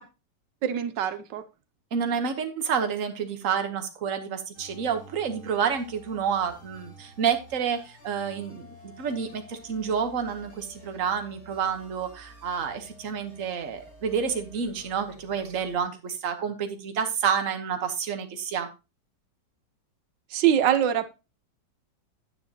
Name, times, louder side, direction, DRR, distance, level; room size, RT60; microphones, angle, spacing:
voice 1, 0.6-1.4 20.3-21.1, right 10 dB, 90° right, 1.5 m, -23 dB
voice 2, 1.9-18.7, right 7 dB, 50° right, 1.5 m, -29 dB
sound 1, 4.5-15.8, equal, 65° left, 5.0 m, -51 dB
10.0 x 9.3 x 2.9 m
omnidirectional pair, 1.9 m